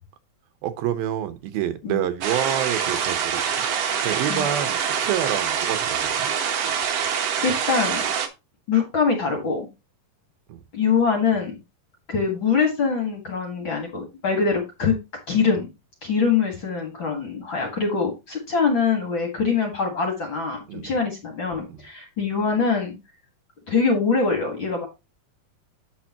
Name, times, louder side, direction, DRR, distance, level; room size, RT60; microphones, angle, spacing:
voice 1, 0.6-3.7 4.0-6.3 10.5-10.6 20.7-21.0 21.7-21.8, right 11 dB, 85° right, 2.8 m, -28 dB
sound 1, 2.2-8.3, right 7 dB, 60° right, 1.7 m, -25 dB
voice 2, 7.4-8.1 8.7-9.7 10.7-11.6 12.1-14.9 15.3-15.7 16.0-22.9 23.7-24.9, left 5 dB, 45° left, 1.7 m, -23 dB
8.8 x 6.9 x 2.9 m
omnidirectional pair, 4.2 m